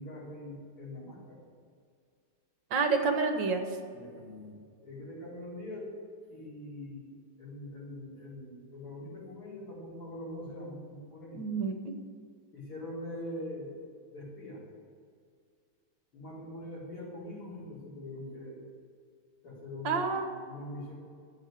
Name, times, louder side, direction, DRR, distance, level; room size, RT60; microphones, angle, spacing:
voice 1, 0.0-1.4 3.9-5.9 6.3-7.1 7.4-11.4 12.5-13.8 14.1-14.7 16.1-18.6 19.4-21.0, left 1 dB, 85° left, -6 dB, 5.3 m, -43 dB
voice 2, 2.7-3.6 11.4-12.0 19.9-20.3, right 4 dB, 60° right, 5 dB, 1.7 m, -29 dB
13.0 x 7.6 x 8.1 m, 2.2 s
omnidirectional pair, 2.4 m